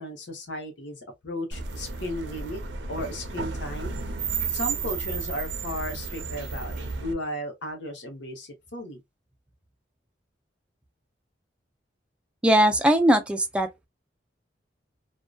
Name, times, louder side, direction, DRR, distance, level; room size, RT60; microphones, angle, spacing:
voice 1, 0.0-2.6 2.9-4.0 4.5-9.0, left 1 dB, 85° left, 0.8 m, -35 dB
sound 1, 1.5-7.1, right 5 dB, 75° right, 0.5 m, -32 dB
voice 2, 12.4-13.9, right 1 dB, 5° right, 0.3 m, -20 dB
2.6 x 2.1 x 2.2 m
head